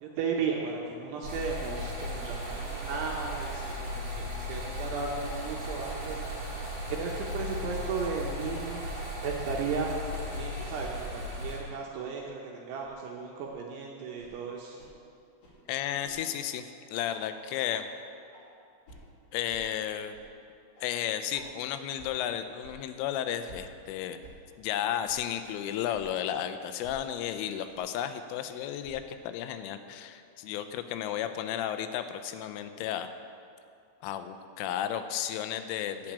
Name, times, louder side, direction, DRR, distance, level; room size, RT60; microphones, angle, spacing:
voice 1, 0.0-6.2 7.0-8.8 9.2-14.8, right 5 dB, 75° right, -1 dB, 2.5 m, -35 dB
sound 1, 1.2-11.6, left 1 dB, 30° right, 3.6 m, -36 dB
sound 2, 12.8-12.9 13.4-13.5 14.2-14.3 14.8-14.9 15.4-15.5 16.0-16.1 16.5-16.6 17.1-17.2 17.7-17.8 18.3-18.4 18.8-19.0 19.5-19.6 20.1-20.3 20.7-20.8 21.3-21.4 22.0-22.1 22.6-22.7 23.5-23.6 24.2-24.3 25.0-25.2 25.9-26.0 26.8-27.0 27.7-27.8 28.8-29.0, right 1 dB, 50° left, 3.7 m, -52 dB
voice 2, 15.7-16.6 16.9-17.8 19.3-20.2 20.8-24.2 24.6-33.1 34.0-36.1, left 10 dB, 85° left, 9 dB, 3.1 m, -33 dB
10.5 x 6.0 x 8.7 m, 2.4 s
omnidirectional pair, 5.7 m